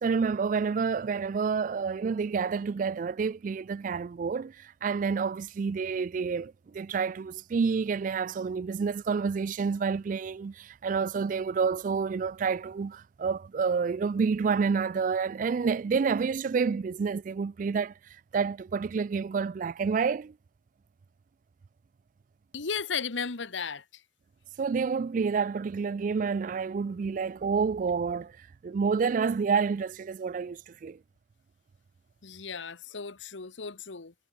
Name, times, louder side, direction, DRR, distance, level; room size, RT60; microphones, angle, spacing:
voice 1, 0.0-20.3 24.6-31.0, right 5 dB, 45° right, 0.3 m, -29 dB
voice 2, 22.5-24.0 32.2-34.1, left 6 dB, 85° left, 1.2 m, -35 dB
head